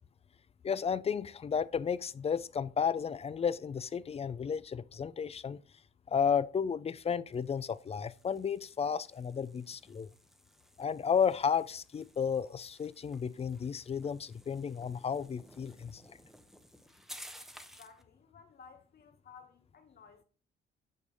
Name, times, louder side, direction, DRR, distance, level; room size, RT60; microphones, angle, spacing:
voice 1, 0.6-5.6 6.1-10.1 10.8-16.0, left 7 dB, 30° left, 0.4 m, -33 dB
sound 1, 7.3-18.0, equal, ahead, 0.8 m, -56 dB
voice 2, 17.8-20.2, left 6 dB, 50° left, 1.6 m, -56 dB
8.6 x 3.3 x 5.4 m
cardioid pair, 90°, 20 cm